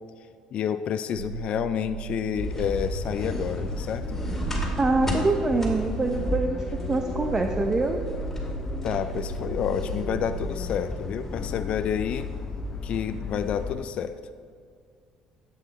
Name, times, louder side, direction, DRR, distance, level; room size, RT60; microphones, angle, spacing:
voice 1, 0.5-4.2 8.8-12.3 12.8-14.2, left 8 dB, 55° left, 10 dB, 0.4 m, -29 dB
sound 1, 1.1-10.5, right 10 dB, 85° right, 0.5 m, -38 dB
sound 2, 2.4-13.7, left 2 dB, 15° left, 2.5 m, -33 dB
sound 3, 3.1-13.9, left 4 dB, 35° left, 0.9 m, -42 dB
voice 2, 4.8-8.0, right 2 dB, 25° right, 5 dB, 0.7 m, -25 dB
11.0 x 7.7 x 4.2 m, 2.1 s
supercardioid pair, 75°, 2 cm